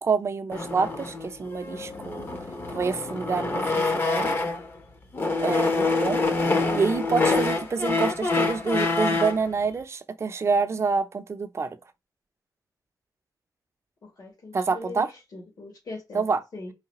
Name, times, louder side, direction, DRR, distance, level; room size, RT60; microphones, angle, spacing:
voice 1, 0.0-2.3 2.7-4.3 5.4-6.2 6.7-11.8 14.5-15.1 16.1-16.4, right 5 dB, 40° right, 0.5 m, -27 dB
sound 1, 0.5-4.7 5.1-9.5, left 3 dB, 30° left, 0.8 m, -26 dB
voice 2, 14.0-16.2 16.5-16.7, left 2 dB, 65° left, 2.2 m, -41 dB
4.8 x 3.3 x 2.9 m
wide cardioid pair, 155°, 7 cm